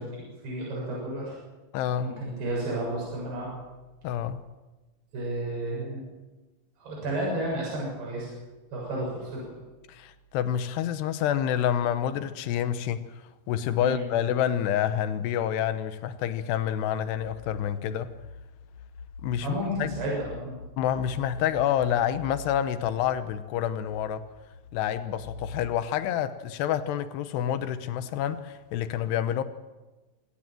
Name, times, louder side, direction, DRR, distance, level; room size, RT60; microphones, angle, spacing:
voice 1, 0.0-1.4 2.0-3.5 5.1-6.0 6.8-8.3 8.7-9.4 13.8-14.0 19.4-20.5, right 1 dB, 70° right, 9.2 m, -32 dB
voice 2, 1.7-2.2 4.0-4.4 9.9-13.1 13.5-18.2 19.2-19.9 20.8-24.3 24.7-29.4, left 10 dB, 80° left, 3.0 m, -28 dB
sound 1, 17.0-25.8, left 3 dB, 55° left, 2.6 m, -45 dB
24.5 x 17.0 x 7.7 m
omnidirectional pair, 4.8 m